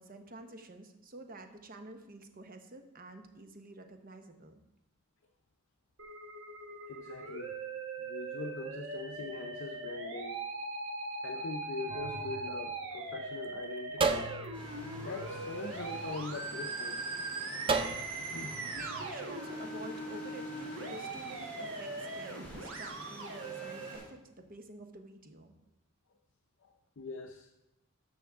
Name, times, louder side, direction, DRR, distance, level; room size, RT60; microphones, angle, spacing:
voice 1, 0.0-4.6 18.7-25.5, right 2 dB, 40° right, 6 dB, 0.9 m, -49 dB
Musical instrument, 6.0-24.0, right 3 dB, 65° right, 1.2 m, -40 dB
voice 2, 6.9-7.6 8.0-10.5 11.2-14.4 15.0-17.3 17.7-17.9 18.3-18.6 26.6-27.5, left 3 dB, 60° left, 4 dB, 0.6 m, -42 dB
sound 1, 11.9-13.3 14.0-16.5 17.7-19.1, right 4 dB, 25° right, 0.5 m, -36 dB
sound 2, 14.5-24.0, equal, 5° left, 2.7 m, -49 dB
13.0 x 6.2 x 3.5 m, 0.92 s
head